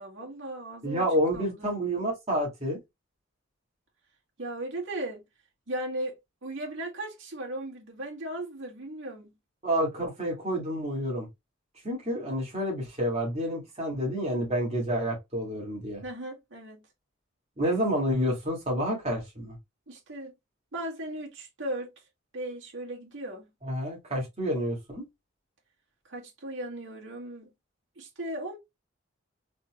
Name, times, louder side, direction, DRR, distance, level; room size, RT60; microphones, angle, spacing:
voice 1, 0.0-1.0 1.3-1.8 4.4-5.3 5.7-9.4 16.0-16.9 19.9-20.3 20.7-21.9 22.3-23.5 26.1-27.5 28.0-28.6, right 1 dB, 75° right, 2.0 m, -37 dB
voice 2, 0.8-2.8 9.6-11.3 11.8-16.0 17.6-19.6 23.6-25.0, equal, 30° right, 2.1 m, -29 dB
4.1 x 4.1 x 2.3 m
head